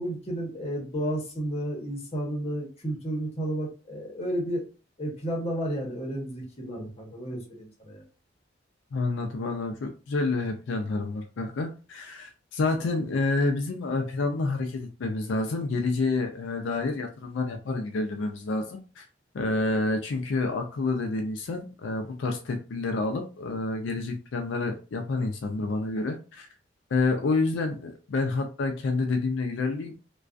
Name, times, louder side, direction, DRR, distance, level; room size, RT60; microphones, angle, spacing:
voice 1, 0.0-4.6 5.0-8.0, right 1 dB, 35° left, 0.9 m, -32 dB
voice 2, 8.9-19.0 19.3-26.5 26.9-30.0, left 3 dB, 85° left, 0.4 m, -28 dB
2.3 x 2.2 x 2.4 m
head